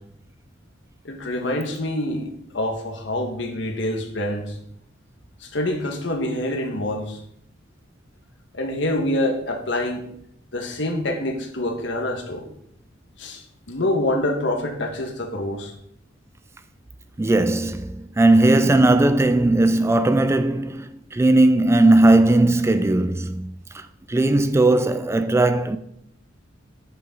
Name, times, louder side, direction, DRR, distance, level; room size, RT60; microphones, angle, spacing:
voice 1, 1.0-2.3 2.5-4.5 5.4-7.2 8.5-10.1 10.5-12.5 13.2-15.7, left 1 dB, 65° left, 1.5 m, -26 dB
voice 2, 17.2-25.8, right 2 dB, 15° right, 0.3 m, -18 dB
9.3 x 6.9 x 3.8 m
head